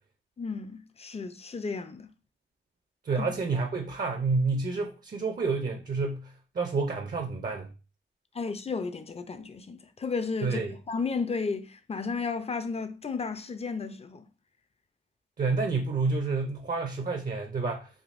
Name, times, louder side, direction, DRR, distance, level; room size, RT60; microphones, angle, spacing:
voice 1, 0.4-2.1 3.2-3.3 8.3-14.3, left 4 dB, 30° left, 0.5 m, -33 dB
voice 2, 3.0-7.7 10.4-10.8 15.4-17.9, right 4 dB, 40° right, 0.6 m, -29 dB
3.5 x 2.5 x 2.5 m
cardioid pair, 50°, 21 cm